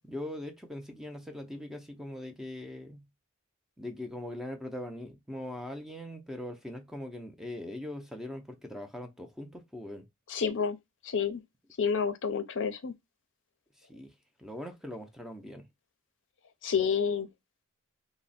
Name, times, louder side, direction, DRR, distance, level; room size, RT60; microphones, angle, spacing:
voice 1, 0.1-3.0 3.8-10.1 13.9-14.1 14.4-15.7, left 1 dB, ahead, 0.5 m, -41 dB
voice 2, 10.3-10.8 11.0-11.4 11.8-12.9 16.6-17.3, left 6 dB, 60° left, 0.5 m, -29 dB
3.3 x 2.1 x 4.0 m
head